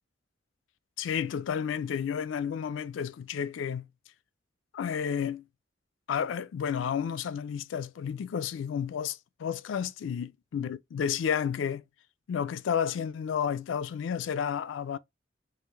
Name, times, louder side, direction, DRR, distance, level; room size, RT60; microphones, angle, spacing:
voice 1, 1.0-3.9 4.7-5.4 6.1-11.8 12.3-15.0, left 7 dB, 85° left, 0.3 m, -31 dB
3.1 x 2.5 x 3.4 m
head